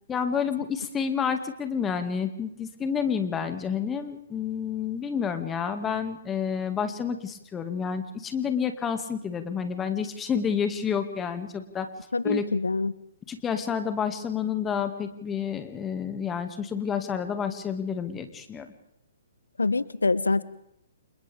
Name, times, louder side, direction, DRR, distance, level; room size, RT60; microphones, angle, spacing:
voice 1, 0.1-11.9 12.2-12.4 13.3-18.7, left 7 dB, 15° left, 7 dB, 2.1 m, -29 dB
voice 2, 12.1-12.9 19.6-20.4, left 3 dB, 80° left, 19 dB, 0.9 m, -25 dB
30.0 x 27.5 x 3.5 m, 0.79 s
figure-of-eight pair, 125°, 0 cm